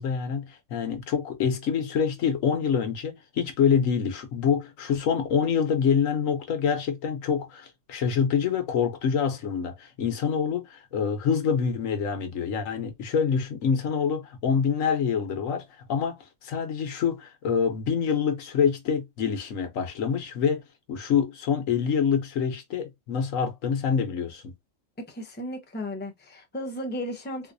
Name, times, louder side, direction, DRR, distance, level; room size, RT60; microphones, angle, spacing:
voice 1, 0.0-20.6 20.9-24.5, left 7 dB, 75° left, 1.2 m, -26 dB
voice 2, 25.0-27.5, equal, 10° left, 0.6 m, -35 dB
3.9 x 2.6 x 2.5 m
omnidirectional pair, 1.4 m